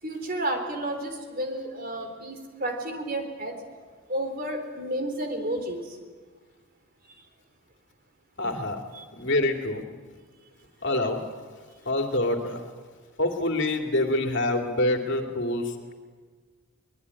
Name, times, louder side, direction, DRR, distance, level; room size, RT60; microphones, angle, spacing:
voice 1, 0.0-3.6 4.1-6.0 7.0-7.2 8.9-9.0, right 1 dB, 40° right, 5 dB, 3.8 m, -31 dB
voice 2, 8.4-8.8 9.1-9.8 10.8-11.3 11.8-12.6 13.2-15.9, left 1 dB, 55° left, 4 dB, 2.7 m, -26 dB
23.0 x 21.0 x 9.8 m, 1.5 s
head